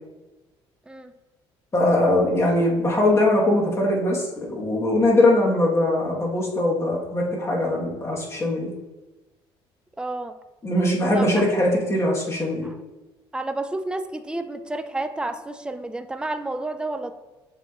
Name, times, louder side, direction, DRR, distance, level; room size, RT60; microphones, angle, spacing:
voice 1, 1.7-8.7 10.6-12.7, left 1 dB, 25° left, -3 dB, 1.4 m, -21 dB
voice 2, 10.0-10.4 11.1-11.4 12.6-12.8 13.3-17.1, right 2 dB, 10° right, 8 dB, 0.4 m, -30 dB
7.3 x 2.9 x 2.5 m, 1.1 s
supercardioid pair, 80°, 11 cm